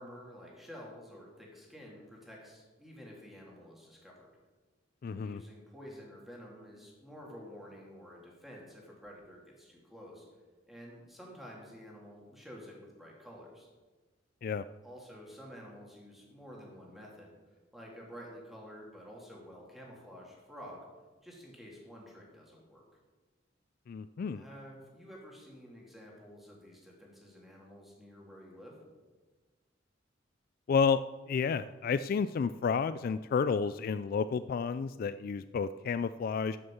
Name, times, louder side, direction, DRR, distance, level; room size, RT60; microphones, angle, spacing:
voice 1, 0.0-4.3 5.2-10.2 10.7-13.7 14.8-17.3 17.7-20.8 21.2-22.8 24.3-28.8, equal, ahead, -3 dB, 2.9 m, -50 dB
voice 2, 5.0-5.4 14.4-14.7 23.9-24.4 30.7-31.0 31.3-36.6, left 6 dB, 50° left, 13 dB, 0.3 m, -31 dB
12.5 x 6.6 x 7.1 m, 1.3 s
head